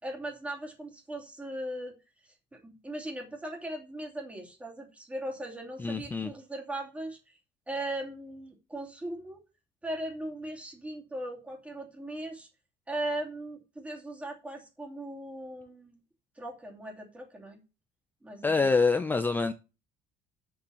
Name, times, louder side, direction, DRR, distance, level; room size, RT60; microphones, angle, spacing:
voice 1, 0.0-1.9 2.2-7.4 7.7-9.4 9.8-12.5 12.9-16.0 16.4-17.6 18.2-18.7, right 1 dB, 10° right, 2.6 m, -38 dB
voice 2, 5.8-6.3 18.4-19.5, left 4 dB, 10° left, 0.4 m, -26 dB
7.1 x 7.0 x 6.8 m
cardioid pair, 160°, 15 cm